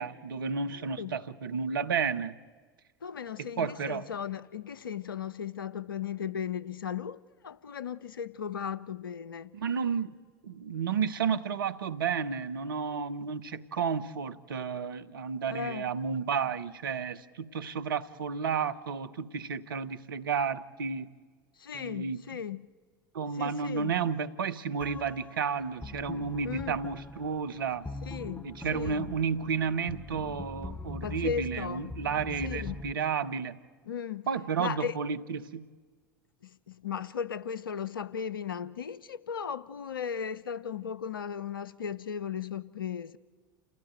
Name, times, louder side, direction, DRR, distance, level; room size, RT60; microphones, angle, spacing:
voice 1, 0.0-2.4 3.4-4.1 9.5-10.2 10.4-21.1 21.7-22.2 23.1-27.9 28.4-33.6 34.3-35.6, right 6 dB, 75° right, 1.0 m, -32 dB
voice 2, 0.7-1.1 3.0-9.5 15.5-15.8 21.6-22.6 23.3-23.9 26.4-26.8 28.0-29.1 31.0-32.0 32.4-32.8 33.9-34.3 34.6-34.9 36.4-43.2, left 7 dB, 80° left, 0.8 m, -36 dB
sound 1, 24.8-32.9, left 2 dB, 10° left, 1.0 m, -42 dB
29.0 x 15.0 x 9.1 m
figure-of-eight pair, 75°, 11 cm